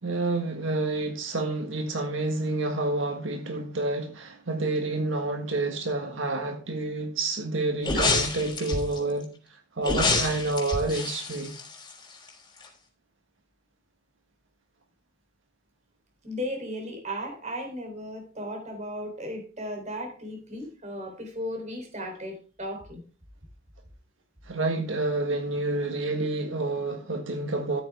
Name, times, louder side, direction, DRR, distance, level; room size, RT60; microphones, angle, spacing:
voice 1, 0.0-11.5 24.5-27.8, right 2 dB, 80° right, 1.6 m, -29 dB
sound 1, 7.8-9.0 9.8-12.3 12.6-12.7, left 3 dB, 25° left, 3.4 m, -27 dB
voice 2, 16.2-23.0, equal, 40° right, 3.6 m, -35 dB
13.5 x 8.9 x 3.5 m
head